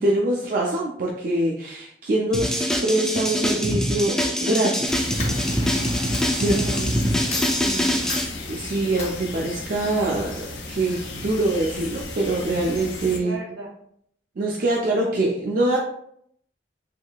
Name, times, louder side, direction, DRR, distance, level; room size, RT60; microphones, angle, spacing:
voice 1, 0.0-5.1 6.3-6.8 8.5-13.4 14.4-15.8, right 2 dB, 50° right, -2 dB, 0.5 m, -24 dB
sound 1, 2.3-8.2, equal, 5° left, 0.4 m, -24 dB
Coin (dropping), 4.6-4.8 5.2-5.8 6.1-6.3 7.0-7.1 7.3-7.6 8.1-8.3 9.0-9.1, left 4 dB, 40° left, 0.8 m, -32 dB
sound 2, 4.9-13.2, left 2 dB, 80° left, 0.6 m, -34 dB
voice 2, 5.2-5.9 6.5-7.0 7.6-7.9 13.1-13.7, right 2 dB, 70° right, 0 dB, 0.9 m, -36 dB
3.6 x 3.2 x 2.2 m, 0.68 s
head